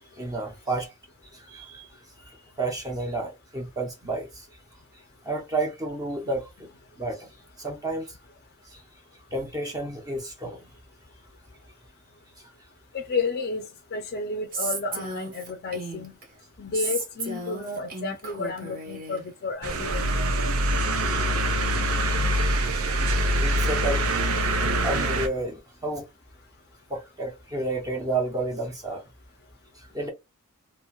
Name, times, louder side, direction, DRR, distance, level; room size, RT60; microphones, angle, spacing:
voice 1, 0.2-0.9 1.3-1.9 2.2-4.5 5.2-6.7 7.0-7.3 7.6-8.2 8.7-8.8 9.3-10.7 23.4-26.0 26.9-29.0 29.8-30.1, right 2 dB, 15° right, 0.6 m, -31 dB
voice 2, 12.9-16.1 16.6-20.1, left 4 dB, 45° left, 0.5 m, -31 dB
Female speech woman speaking, 14.5-16.2 16.7-19.2, right 3 dB, 45° right, 1.1 m, -34 dB
sound 1, 19.6-25.3, right 1 dB, 80° right, 0.7 m, -24 dB
2.9 x 2.5 x 2.2 m
head